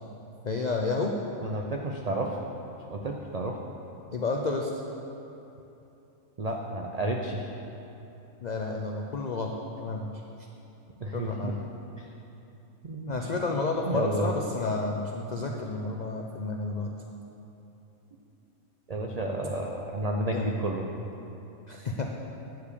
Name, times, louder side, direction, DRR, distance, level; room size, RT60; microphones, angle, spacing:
voice 1, 0.4-1.2 4.1-4.7 8.4-10.2 11.1-11.6 13.1-16.9 20.3-20.5 21.7-22.1, left 3 dB, 80° left, 1 dB, 0.4 m, -31 dB
voice 2, 1.4-2.4 2.9-3.6 6.4-7.5 11.0-11.5 12.0-12.1 12.8-13.4 13.9-14.3 18.9-20.9, right 2 dB, 85° right, 0 dB, 0.3 m, -31 dB
9.2 x 4.9 x 6.8 m, 2.9 s
omnidirectional pair, 1.5 m